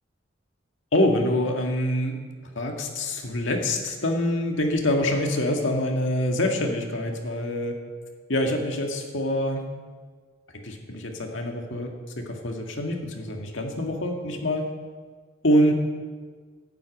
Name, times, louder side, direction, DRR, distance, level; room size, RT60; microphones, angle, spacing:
voice 1, 0.9-2.2 2.6-7.8 8.3-9.6 10.6-11.9 12.2-14.7 15.4-15.7, left 1 dB, 80° left, 2 dB, 1.8 m, -25 dB
11.5 x 8.1 x 8.9 m, 1.5 s
head